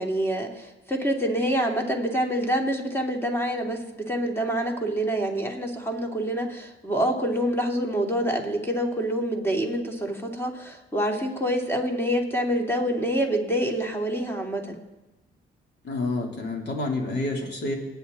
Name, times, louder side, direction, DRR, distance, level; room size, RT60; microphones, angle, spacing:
voice 1, 0.0-14.8, equal, 10° left, 2 dB, 2.9 m, -26 dB
voice 2, 15.8-17.7, left 2 dB, 60° left, 1 dB, 3.4 m, -28 dB
29.5 x 10.0 x 4.1 m, 1.0 s
cardioid pair, 90°, 20 cm